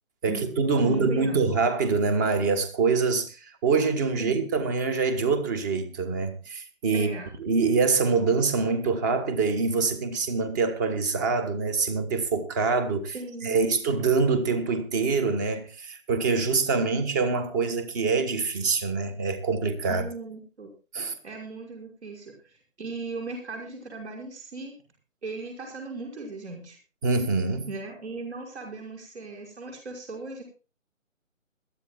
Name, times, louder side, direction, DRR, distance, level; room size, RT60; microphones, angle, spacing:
voice 1, 0.2-7.1 7.4-13.2 13.4-20.0 20.9-21.1 27.0-27.7, right 4 dB, 15° right, 1.3 m, -25 dB
voice 2, 0.8-1.5 4.2-4.4 6.9-7.3 13.1-13.8 19.9-20.7 21.2-24.7 25.2-26.8 27.7-30.4, right 3 dB, 55° right, 5.9 m, -37 dB
21.5 x 13.5 x 2.3 m
figure-of-eight pair, 155°, 40 cm